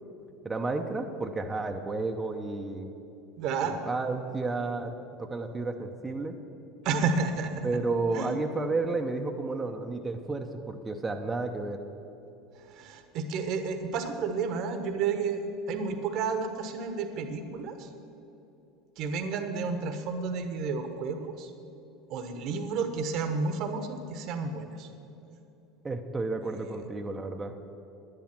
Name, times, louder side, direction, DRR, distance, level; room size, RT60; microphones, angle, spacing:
voice 1, 0.4-2.9 3.6-4.9 5.2-6.3 7.6-11.8 25.8-27.5, right 3 dB, 20° right, 3 dB, 0.9 m, -32 dB
voice 2, 3.4-3.8 6.8-7.7 8.1-8.3 12.7-15.4 15.7-17.9 19.0-21.5 22.1-24.9 26.7-26.8, right 5 dB, 55° right, 8 dB, 1.2 m, -31 dB
10.5 x 10.0 x 6.0 m, 2.9 s
hypercardioid pair, 75°, 0 cm